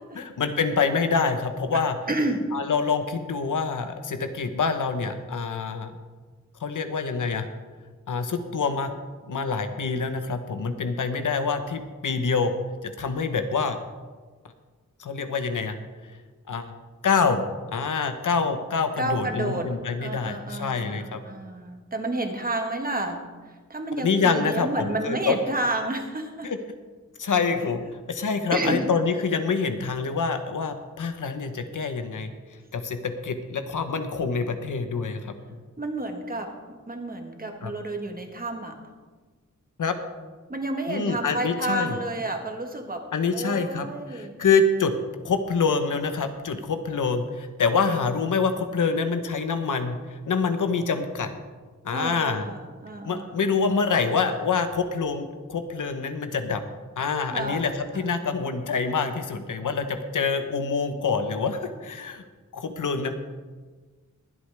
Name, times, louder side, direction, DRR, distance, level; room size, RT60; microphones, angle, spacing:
voice 1, 0.1-2.0 2.5-5.9 6.6-7.5 8.1-8.9 9.3-12.5 12.8-13.8 15.0-15.8 16.5-16.7 17.0-17.4 17.7-21.2 24.0-25.4 26.4-26.6 27.2-27.8 28.1-32.3 32.7-35.3 37.6-37.7 39.8-40.0 40.9-41.9 43.1-44.9 45.2-51.3 51.8-52.4 53.0-56.6 57.0-62.2 62.5-63.1, left 5 dB, 85° left, 8 dB, 1.0 m, -26 dB
voice 2, 2.1-2.5 19.0-19.7 20.0-26.5 28.5-28.9 35.8-38.8 40.5-43.0 43.3-44.4 51.9-53.4 57.3-57.7 57.9-58.1, right 2 dB, 30° right, 4 dB, 1.5 m, -30 dB
22.0 x 8.2 x 3.4 m, 1.4 s
wide cardioid pair, 115°, 30 cm